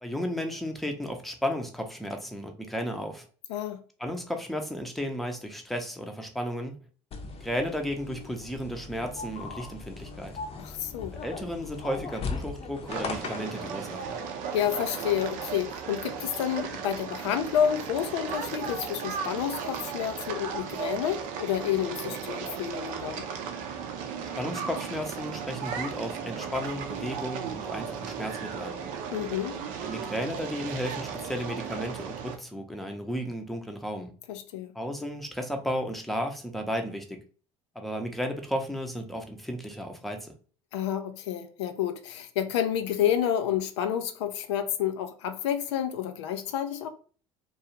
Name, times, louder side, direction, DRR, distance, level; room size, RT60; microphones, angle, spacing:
voice 1, 0.0-3.3 4.0-6.8 7.4-10.4 11.1-14.2 24.4-28.8 29.8-34.1 34.7-37.2 37.7-40.3, equal, ahead, 0.6 m, -34 dB
sound 1, 7.1-13.7, left 4 dB, 40° left, 0.7 m, -38 dB
voice 2, 10.6-11.2 14.5-23.3 29.1-29.6 34.3-34.7 40.7-46.9, left 9 dB, 80° left, 0.4 m, -29 dB
sound 2, 12.9-32.4, right 6 dB, 60° right, 0.5 m, -36 dB
2.3 x 2.3 x 2.9 m
hypercardioid pair, 70°, 15 cm